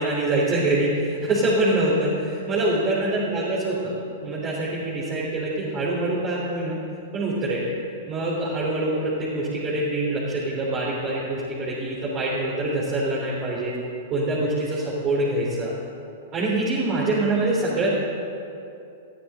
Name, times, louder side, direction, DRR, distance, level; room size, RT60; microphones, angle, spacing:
voice 1, 0.0-4.0 4.2-6.8 7.1-7.6 8.1-13.7 14.1-15.7 16.3-17.9, right 2 dB, 35° right, -7 dB, 3.6 m, -24 dB
22.0 x 14.0 x 3.8 m, 2.7 s
figure-of-eight pair, 105°, 0 cm